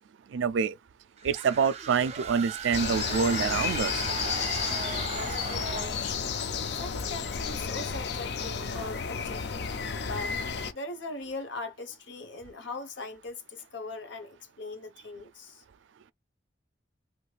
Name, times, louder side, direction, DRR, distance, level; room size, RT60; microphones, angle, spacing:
voice 1, 0.3-0.7 1.2-4.0, right 6 dB, 85° right, 0.4 m, -26 dB
sound 1, 1.2-6.1, right 5 dB, 35° right, 0.7 m, -37 dB
sound 2, 2.7-10.7, left 6 dB, 60° left, 0.5 m, -32 dB
voice 2, 5.1-6.3 6.7-9.7 10.0-10.4 10.7-15.6, left 3 dB, 80° left, 1.0 m, -40 dB
3.3 x 2.9 x 2.4 m
head